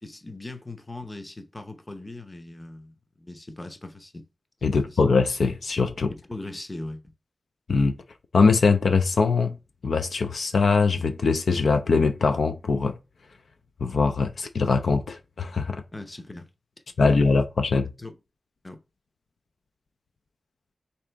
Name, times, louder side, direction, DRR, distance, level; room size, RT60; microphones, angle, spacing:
voice 1, 0.0-4.3 4.7-5.0 6.1-7.1 15.9-16.5 17.1-17.3 18.0-18.2 18.6-18.8, left 2 dB, 30° left, 0.7 m, -39 dB
voice 2, 4.6-6.1 7.7-8.0 8.3-9.6 9.8-13.0 13.8-15.8 17.0-17.9, left 4 dB, 75° left, 0.4 m, -22 dB
3.7 x 2.8 x 3.4 m
cardioid pair, 55°, 0 cm